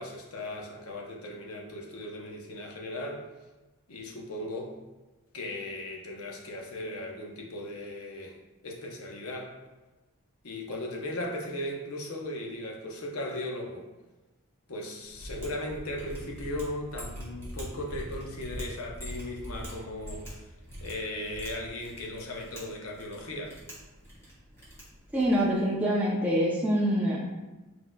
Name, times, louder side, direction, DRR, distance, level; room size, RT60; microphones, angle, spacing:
voice 1, 0.0-3.2 3.9-4.7 5.3-8.4 8.6-9.5 10.4-13.9 14.7-20.5 20.8-23.6, left 1 dB, 80° left, 0 dB, 0.8 m, -37 dB
Mechanisms, 15.1-25.6, equal, 10° left, 1.3 m, -43 dB
voice 2, 25.1-27.2, equal, 5° right, -5 dB, 0.5 m, -25 dB
4.6 x 4.2 x 2.3 m, 1.1 s
head